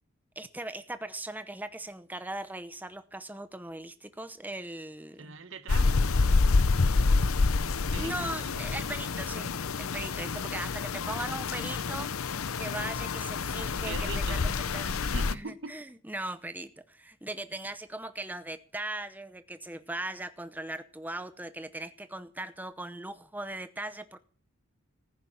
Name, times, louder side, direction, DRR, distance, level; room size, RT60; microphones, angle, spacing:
voice 1, 0.4-5.3 8.0-12.1 12.6-15.0 15.3-24.2, right 1 dB, 10° right, 0.8 m, -39 dB
voice 2, 5.2-8.6 13.6-15.8, right 4 dB, 60° right, 1.1 m, -44 dB
sound 1, 5.7-15.3, left 4 dB, 80° left, 0.7 m, -28 dB
15.0 x 10.5 x 7.3 m
head